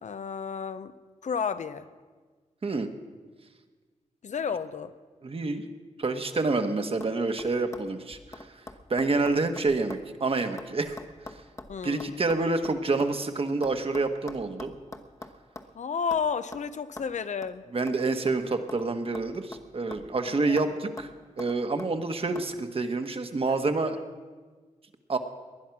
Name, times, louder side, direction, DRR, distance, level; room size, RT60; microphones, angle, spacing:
voice 1, 0.0-0.9 1.2-1.9 4.2-4.9 11.7-12.3 15.7-17.6 20.3-20.8, left 6 dB, 70° left, 12 dB, 0.7 m, -32 dB
voice 2, 5.2-5.6 6.0-8.5 8.9-11.0 11.8-14.7 17.7-21.1 21.4-24.0 25.1-25.2, right 3 dB, 45° right, 7 dB, 1.3 m, -28 dB
sound 1, 6.2-6.6 7.0-7.1 7.4-10.1 10.3-13.1 13.6-15.8 16.1-16.3 16.5-16.7 17.0-17.1 17.4-17.5 17.9-18.9 19.1-20.2 20.6-20.7 21.0-21.9 22.3-22.5, left 2 dB, 25° left, 1.1 m, -44 dB
19.5 x 11.0 x 5.9 m, 1.4 s
wide cardioid pair, 85°, 13 cm